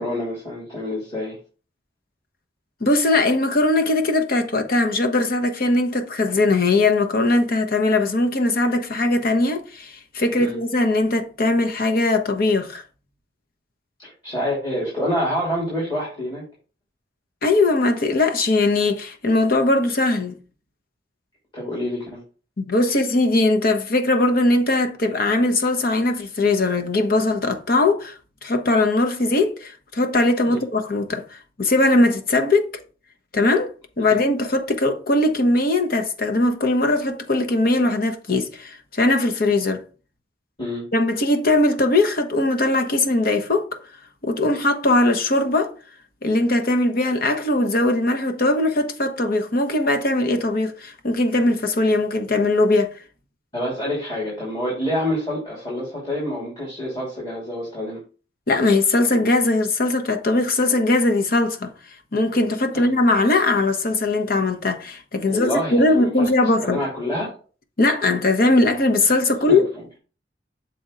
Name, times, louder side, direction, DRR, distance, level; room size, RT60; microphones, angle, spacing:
voice 1, 0.0-1.4 10.4-10.6 14.0-16.4 21.5-22.2 30.4-30.6 34.1-34.2 40.6-40.9 53.5-58.0 62.7-62.9 65.3-66.3 66.6-67.3 69.5-69.7, left 1 dB, 25° left, 2.9 m, -27 dB
voice 2, 2.8-12.8 17.4-20.3 22.6-28.1 28.4-32.7 33.3-33.7 34.0-39.8 40.9-43.7 44.2-45.7 46.2-52.9 58.5-61.7 62.1-66.8 67.8-69.6, left 2 dB, 50° left, 0.9 m, -20 dB
6.8 x 4.3 x 3.8 m
head